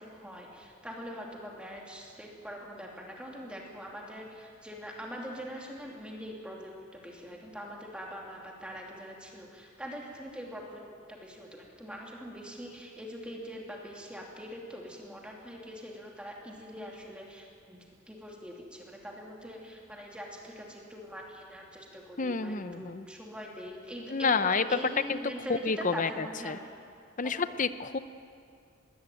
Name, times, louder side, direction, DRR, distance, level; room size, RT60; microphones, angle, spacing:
voice 1, 0.0-10.8 11.1-26.7 27.2-27.4 27.8-27.9, equal, 5° right, -1 dB, 2.7 m, -43 dB
voice 2, 22.2-23.0 24.1-24.7 25.1-25.2 25.6-26.6 27.2-28.0, left 4 dB, 40° left, 13 dB, 0.7 m, -29 dB
21.5 x 17.0 x 9.2 m, 2.3 s
head